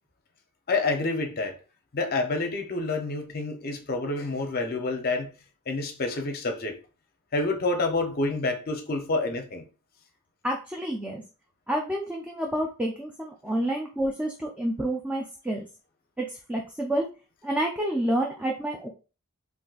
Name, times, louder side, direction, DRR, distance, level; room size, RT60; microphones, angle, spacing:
voice 1, 0.7-1.5 1.9-5.3 5.7-6.7 7.3-9.6, left 3 dB, 45° left, 0.6 m, -28 dB
voice 2, 10.4-11.2 11.7-15.7 16.2-17.1 17.4-18.9, right 1 dB, 5° right, 0.3 m, -29 dB
3.8 x 2.5 x 2.3 m
head